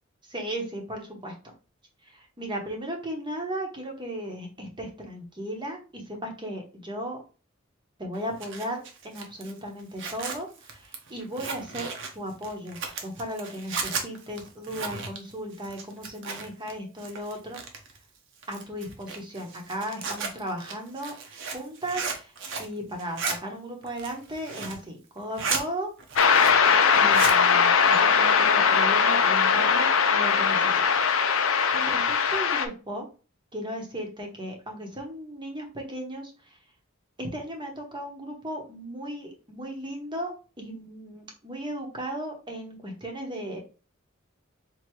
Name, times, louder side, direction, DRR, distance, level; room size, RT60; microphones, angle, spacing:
voice 1, 0.3-1.5 2.1-7.2 8.0-17.6 18.5-21.2 21.5-22.3 22.6-25.9 26.9-30.9 31.4-33.1 33.5-36.3 37.2-40.3 40.6-43.6, right 1 dB, 20° right, 2 dB, 1.0 m, -36 dB
Zipper (clothing), 8.1-16.7 17.0-18.0 18.4-22.7 23.0-23.4 23.8-24.8 25.2-25.6 26.0-26.7 27.0-27.4, right 4 dB, 60° right, 0.9 m, -34 dB
sound 1, 26.2-32.7, left 6 dB, 65° left, 0.6 m, -20 dB
4.4 x 2.8 x 3.0 m, 0.34 s
head